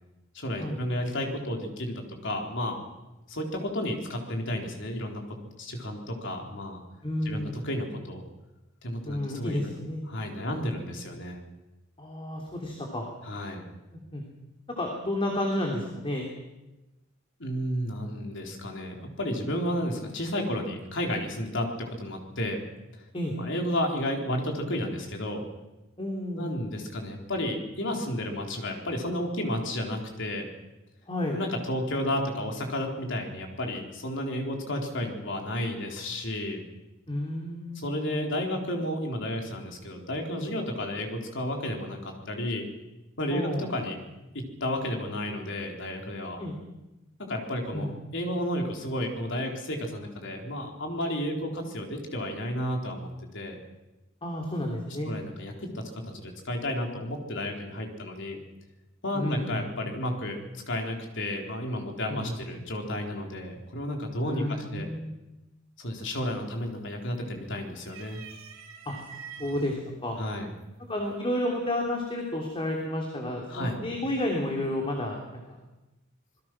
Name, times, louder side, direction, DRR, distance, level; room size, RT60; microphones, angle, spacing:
voice 1, 0.3-2.8 3.3-5.2 5.6-6.8 7.3-8.2 8.8-9.8 10.1-11.4 13.3-13.7 17.4-22.6 23.4-25.4 26.4-30.5 31.3-36.6 37.8-42.6 43.2-44.0 44.3-46.4 47.3-47.9 48.1-53.6 55.1-58.4 59.0-60.4 60.7-64.9 65.8-68.2 70.2-70.5 73.5-73.8, left 1 dB, 65° left, 2 dB, 4.0 m, -32 dB
voice 2, 7.0-7.7 9.0-10.1 12.0-13.0 13.9-14.2 14.7-16.2 23.1-23.4 26.0-26.5 31.1-31.4 37.1-37.8 43.3-43.7 46.4-46.6 47.7-47.9 54.2-55.1 59.1-59.6 62.1-62.4 64.2-65.1 68.8-68.9 69.4-70.2 70.9-75.6, left 1 dB, 25° left, 0 dB, 3.2 m, -31 dB
sound 1, 66.0-66.4 66.7-67.4 67.8-69.7 70.6-70.7 71.9-72.4, right 7 dB, 80° right, 4.5 m, -46 dB
26.0 x 20.5 x 6.2 m, 1.0 s
head